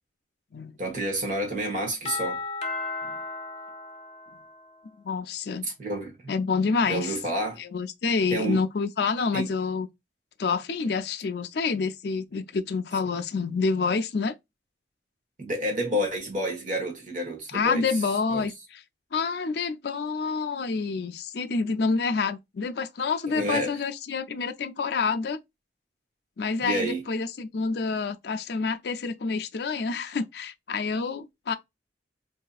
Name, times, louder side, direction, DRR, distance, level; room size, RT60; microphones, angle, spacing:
voice 1, 0.8-2.4 5.6-6.3 6.8-7.6 8.3-8.6 9.3-9.5 15.4-17.9 18.3-18.5 23.3-23.8 26.6-27.0, right 1 dB, 45° right, 1.3 m, -29 dB
Doorbell, 2.1-4.9, left 3 dB, 35° left, 0.7 m, -35 dB
voice 2, 5.0-5.7 6.3-7.2 7.6-9.9 10.4-14.3 17.5-18.8 19.1-25.4 26.4-31.6, left 4 dB, 60° left, 0.5 m, -28 dB
4.7 x 2.7 x 2.3 m
head